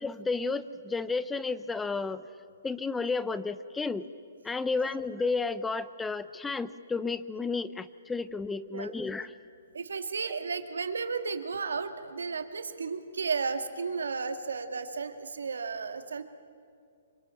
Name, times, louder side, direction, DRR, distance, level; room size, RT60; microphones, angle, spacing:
voice 1, 0.0-2.2 2.6-4.1 4.4-9.3, left 4 dB, 10° left, 14 dB, 0.6 m, -32 dB
voice 2, 9.7-16.2, right 5 dB, 85° right, 8 dB, 1.9 m, -33 dB
25.5 x 23.5 x 9.0 m, 2.3 s
hypercardioid pair, 140°, 0 cm